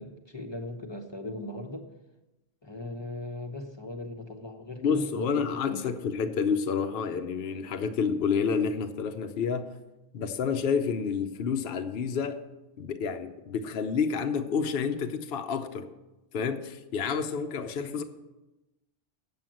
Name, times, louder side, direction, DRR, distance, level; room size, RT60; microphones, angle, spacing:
voice 1, 0.0-1.9 2.6-5.9, left 2 dB, 25° left, 3 dB, 0.9 m, -39 dB
voice 2, 4.8-9.7 10.1-12.4 12.8-15.9 16.3-18.0, left 6 dB, 60° left, 6 dB, 0.9 m, -29 dB
8.5 x 7.4 x 7.6 m, 1.0 s
omnidirectional pair, 1.2 m